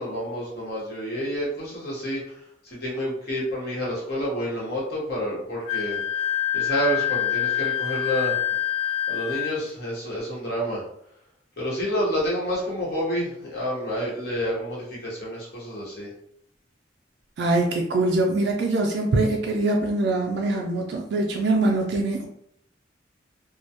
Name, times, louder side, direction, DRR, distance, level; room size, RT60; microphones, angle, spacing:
voice 1, 0.0-6.0 6.5-8.4 9.1-10.8 11.6-16.1, equal, 60° left, -5 dB, 0.9 m, -29 dB
Wind instrument woodwind instrument, 5.7-9.5, left 11 dB, 90° left, 0.4 m, -26 dB
voice 2, 17.4-22.3, right 2 dB, 60° right, 0 dB, 0.3 m, -23 dB
2.2 x 2.1 x 2.7 m, 0.72 s
head